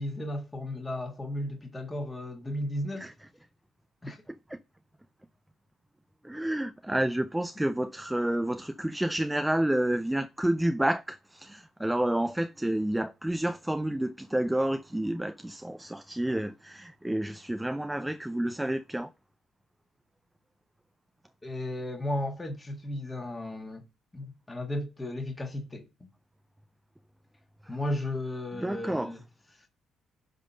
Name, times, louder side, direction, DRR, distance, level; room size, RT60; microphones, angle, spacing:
voice 1, 0.0-3.1 4.0-4.2 21.4-23.8 24.1-26.1 27.7-29.2 29.6-29.7, left 1 dB, 20° left, 1.6 m, -34 dB
voice 2, 4.3-4.6 6.2-19.1 27.6-27.8 28.6-29.1, right 1 dB, 5° right, 0.4 m, -30 dB
11.0 x 3.7 x 5.5 m
supercardioid pair, 75°, 0 cm